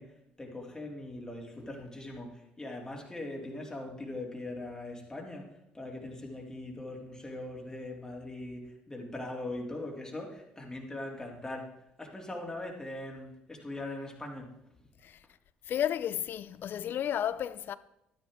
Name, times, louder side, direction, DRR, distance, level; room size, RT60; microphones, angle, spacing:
voice 1, 0.0-11.7 12.0-14.5, left 2 dB, 15° left, 2.8 m, -41 dB
voice 2, 15.7-17.8, left 10 dB, 55° left, 0.5 m, -32 dB
12.0 x 10.0 x 3.6 m
hypercardioid pair, 65°, 4 cm